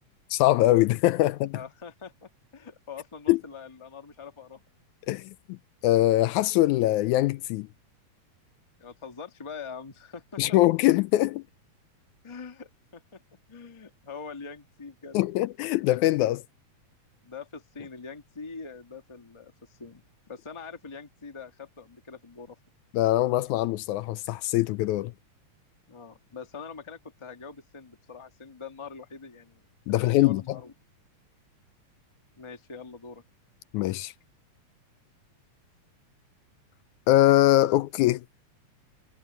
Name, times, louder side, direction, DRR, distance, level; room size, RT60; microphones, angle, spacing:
voice 1, 0.3-1.6 3.3-3.4 5.1-5.6 5.8-7.7 10.4-11.4 15.1-16.4 22.9-25.1 29.9-30.6 33.7-34.1 37.1-38.2, left 16 dB, 80° left, 1.9 m, -22 dB
voice 2, 1.5-4.6 8.8-10.6 12.2-13.2 13.5-15.2 17.2-22.6 25.9-29.6 29.9-30.7 32.4-33.2, left 5 dB, 15° left, 1.0 m, -43 dB
omnidirectional pair, 3.5 m